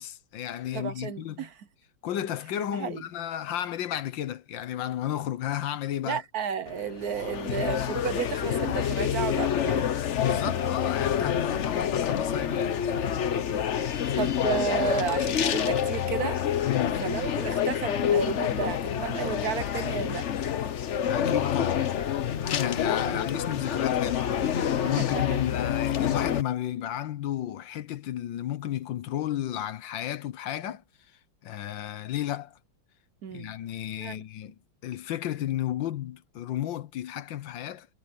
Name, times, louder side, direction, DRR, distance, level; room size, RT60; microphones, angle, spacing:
voice 1, 0.0-1.5 2.0-6.2 10.1-13.2 16.6-17.0 21.1-21.9 22.4-30.8 31.4-32.6 33.3-34.5 34.8-37.9, left 12 dB, 75° left, 1.6 m, -33 dB
voice 2, 0.7-1.5 2.7-3.0 6.1-9.9 10.4-10.5 14.2-16.4 17.0-20.3 23.1-23.2 25.0-25.2 33.2-33.5 34.0-34.2, right 8 dB, 60° right, 1.1 m, -32 dB
sound 1, 6.7-26.4, left 9 dB, 55° left, 0.8 m, -27 dB
omnidirectional pair, 2.1 m